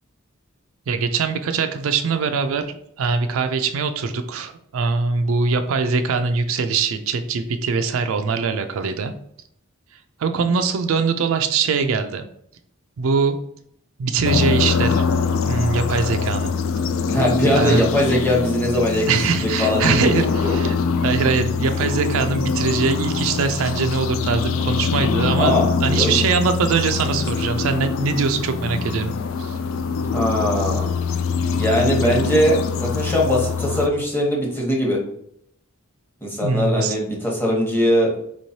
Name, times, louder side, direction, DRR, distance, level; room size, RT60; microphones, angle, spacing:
voice 1, 0.9-9.1 10.2-12.3 13.0-13.4 14.0-15.0 15.4-16.5 17.5-17.8 19.1-20.8 21.0-25.5 25.8-29.1 29.4-29.6 36.4-37.0, right 4 dB, 75° right, 7 dB, 0.4 m, -22 dB
sound 1, 14.2-33.9, left 5 dB, 70° left, 0.3 m, -23 dB
voice 2, 17.1-20.1 20.4-20.5 25.3-26.1 30.0-30.9 31.5-35.0 36.2-38.1, equal, 10° left, -2 dB, 1.0 m, -21 dB
4.4 x 3.1 x 2.7 m, 0.71 s
head